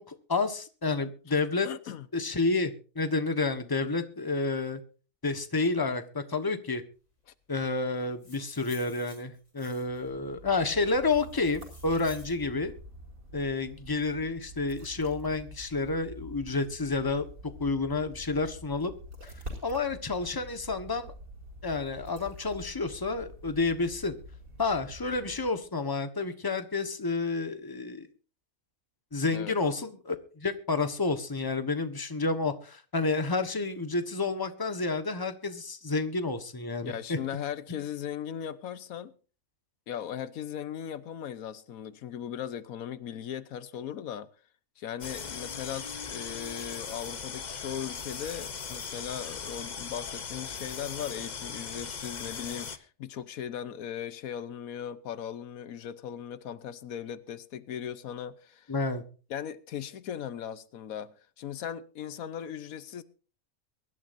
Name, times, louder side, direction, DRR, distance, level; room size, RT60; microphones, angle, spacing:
voice 1, 0.0-1.7 2.1-4.8 5.2-6.8 7.5-12.7 13.3-17.2 17.6-18.9 19.2-19.3 19.6-21.1 21.6-24.2 24.6-28.1 29.1-37.2 58.7-59.0, left 3 dB, 15° left, 1.2 m, -30 dB
voice 2, 1.6-2.1 29.3-29.6 36.8-39.1 39.9-44.3 44.8-58.7 59.3-63.0, left 9 dB, 85° left, 1.3 m, -38 dB
sound 1, 8.0-10.1 10.7-12.4, left 1 dB, 70° left, 5.5 m, -53 dB
sound 2, 10.0-25.7, equal, 75° right, 4.9 m, -47 dB
sound 3, 45.0-52.8, left 6 dB, 40° left, 0.8 m, -39 dB
23.0 x 12.5 x 2.6 m
omnidirectional pair, 1.4 m